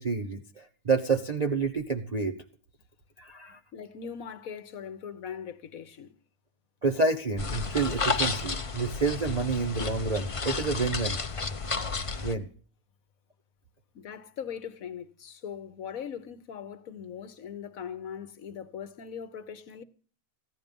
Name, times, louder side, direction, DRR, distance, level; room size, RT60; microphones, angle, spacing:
voice 1, 0.0-2.4 3.2-3.6 6.8-11.2 12.2-12.5, right 4 dB, 35° right, 0.8 m, -29 dB
voice 2, 3.7-6.1 13.9-19.8, left 7 dB, 65° left, 1.3 m, -40 dB
sound 1, 7.4-12.4, left 4 dB, 30° left, 0.6 m, -32 dB
16.0 x 10.5 x 5.3 m
omnidirectional pair, 1.6 m